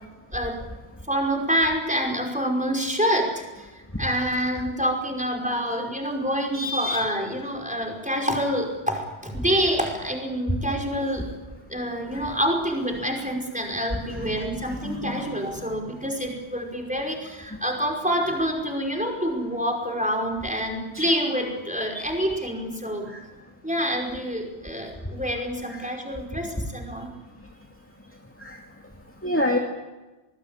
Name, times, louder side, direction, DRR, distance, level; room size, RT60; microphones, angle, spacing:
voice 1, 1.1-11.2 11.7-23.1 23.6-27.1, equal, 5° right, 2 dB, 5.3 m, -27 dB
voice 2, 6.5-7.0 12.1-12.3 14.1-14.3 14.8-15.0 22.0-22.1 28.4-28.6 29.2-29.6, left 1 dB, 10° left, 2 dB, 2.4 m, -26 dB
26.0 x 20.0 x 9.0 m, 1.2 s
omnidirectional pair, 1.1 m